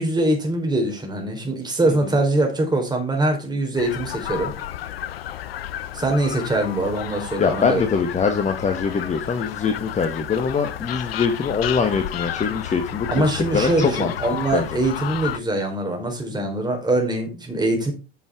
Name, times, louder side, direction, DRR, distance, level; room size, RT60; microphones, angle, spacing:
voice 1, 0.0-4.5 5.9-7.8 13.1-17.9, right 2 dB, 15° right, 2 dB, 4.1 m, -23 dB
sound 1, 3.8-15.4, left 11 dB, 80° left, 0.6 m, -32 dB
voice 2, 7.4-13.2 13.5-14.1 14.5-14.7, left 5 dB, 25° left, 5 dB, 1.4 m, -23 dB
9.5 x 6.8 x 3.7 m, 0.31 s
hypercardioid pair, 75°, 30 cm